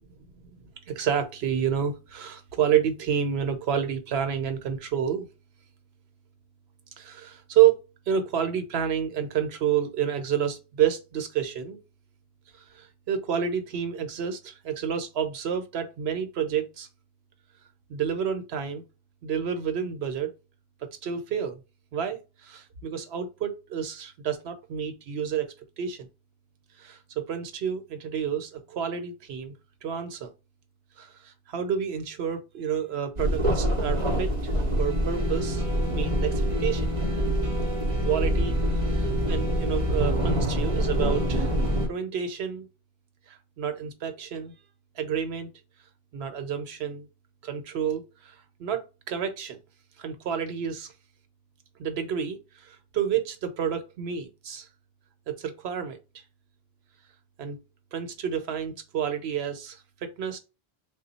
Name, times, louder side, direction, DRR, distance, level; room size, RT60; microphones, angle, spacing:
voice 1, 0.6-5.3 7.0-7.8 8.1-11.8 12.7-16.9 17.9-18.8 19.2-20.3 21.0-21.6 21.9-25.5 25.8-26.1 26.8-27.0 27.3-29.5 29.8-30.3 31.0-36.9 38.0-41.5 41.9-42.7 43.3-44.5 45.0-45.5 46.1-47.1 47.4-48.8 49.1-49.6 50.0-50.9 51.8-54.7 55.3-56.0 57.4-57.6 57.9-60.4, right 8 dB, 80° right, 1.0 m, -29 dB
sound 1, 33.2-41.9, equal, 35° right, 0.9 m, -25 dB
3.3 x 2.2 x 4.1 m
omnidirectional pair, 1.1 m